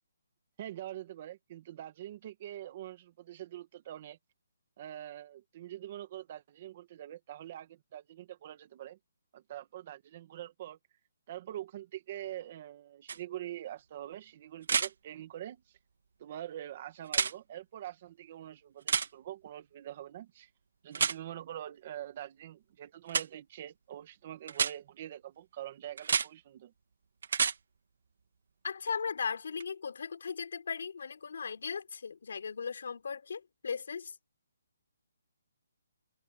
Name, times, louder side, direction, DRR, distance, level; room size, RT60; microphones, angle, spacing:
voice 1, 0.6-4.2 4.8-9.0 9.3-10.8 11.3-15.8 16.2-20.5 20.8-26.7, right 12 dB, 25° right, 2.0 m, -44 dB
sound 1, 13.1-13.2 14.6-14.9 17.1-17.3 18.9-19.1 20.9-21.2 23.1-23.3 24.5-24.7 26.0-26.3 27.2-27.6 29.6-29.7, right 6 dB, 55° right, 2.8 m, -29 dB
voice 2, 28.6-34.1, left 6 dB, 55° left, 3.7 m, -37 dB
hypercardioid pair, 175°, 0 cm